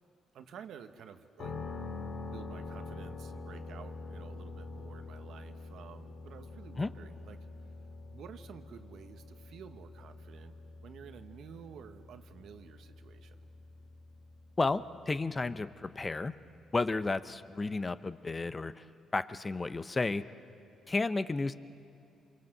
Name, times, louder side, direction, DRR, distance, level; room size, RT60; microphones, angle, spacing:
voice 1, 0.3-1.5 2.1-7.4 8.1-10.5 10.8-13.4, right 8 dB, 75° right, 8 dB, 1.2 m, -51 dB
sound 1, 1.4-17.2, left 3 dB, 65° left, 2.4 m, -46 dB
voice 2, 14.6-16.4 16.7-18.8 19.1-20.3 20.9-21.5, left 3 dB, 30° left, 13 dB, 0.7 m, -32 dB
26.0 x 23.5 x 7.8 m, 2.6 s
supercardioid pair, 70°, 0 cm